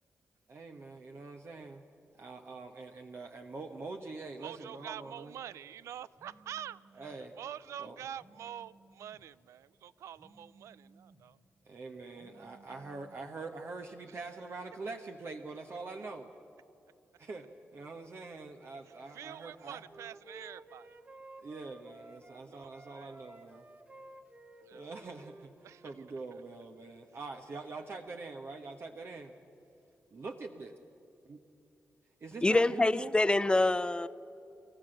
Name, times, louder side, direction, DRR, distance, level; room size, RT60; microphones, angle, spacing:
voice 1, 0.5-1.8 2.1-5.3 6.9-7.3 7.8-8.0 11.7-16.3 17.2-19.8 21.4-23.7 24.7-29.4 30.1-30.7 32.2-33.1, right 3 dB, 55° right, 1.2 m, -44 dB
voice 2, 4.4-6.8 7.4-11.4 12.1-12.5 19.1-20.9 22.4-23.2 24.6-24.8 25.6-25.9, right 10 dB, 85° right, 0.5 m, -46 dB
Telephone, 6.2-7.2 8.2-9.2 10.2-11.2 12.2-13.2, right 3 dB, 15° right, 1.9 m, -61 dB
Wind instrument woodwind instrument, 19.5-22.4 22.7-26.2, right 2 dB, 35° right, 1.8 m, -54 dB
voice 3, 32.4-34.1, left 2 dB, 20° left, 0.8 m, -26 dB
28.5 x 13.5 x 7.8 m
cardioid pair, 55°, 5 cm